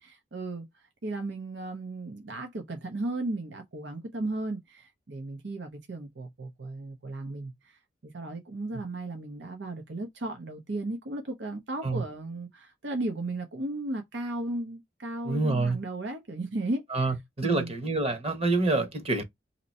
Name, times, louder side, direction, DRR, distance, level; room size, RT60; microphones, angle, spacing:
voice 1, 0.3-0.7 1.0-17.1 17.4-17.7, right 2 dB, 80° right, 0.8 m, -35 dB
voice 2, 15.3-15.8 16.9-19.2, right 3 dB, 35° right, 1.0 m, -27 dB
2.9 x 2.6 x 4.1 m
head